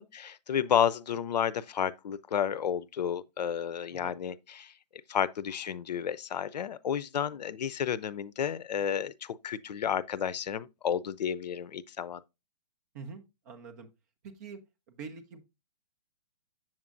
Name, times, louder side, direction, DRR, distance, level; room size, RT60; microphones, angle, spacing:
voice 1, 0.0-4.7 5.1-12.2, left 8 dB, 85° left, 0.6 m, -31 dB
voice 2, 12.9-13.9 14.2-14.6 14.9-15.4, right 5 dB, 25° right, 0.8 m, -45 dB
7.6 x 7.3 x 2.5 m
hypercardioid pair, 170°, 21 cm